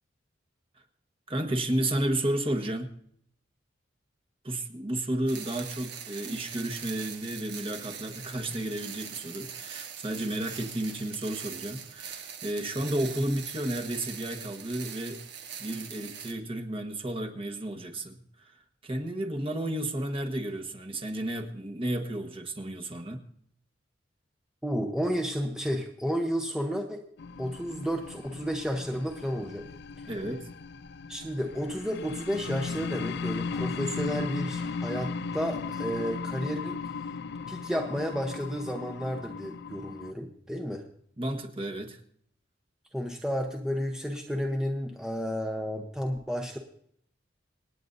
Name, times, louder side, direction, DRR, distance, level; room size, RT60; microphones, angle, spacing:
voice 1, 1.3-3.0 4.4-15.2 15.6-23.3 30.1-30.5 41.2-42.0, right 1 dB, 30° right, 5 dB, 1.3 m, -32 dB
sound 1, 5.3-16.3, right 7 dB, 60° right, 1.5 m, -42 dB
voice 2, 24.6-27.0 27.4-29.7 30.0-30.1 31.1-36.8 37.5-40.8 42.9-46.6, equal, 5° right, 2 dB, 0.9 m, -32 dB
sound 2, 27.2-40.1, left 4 dB, 60° left, 0.4 m, -36 dB
27.5 x 9.3 x 2.6 m, 0.66 s
head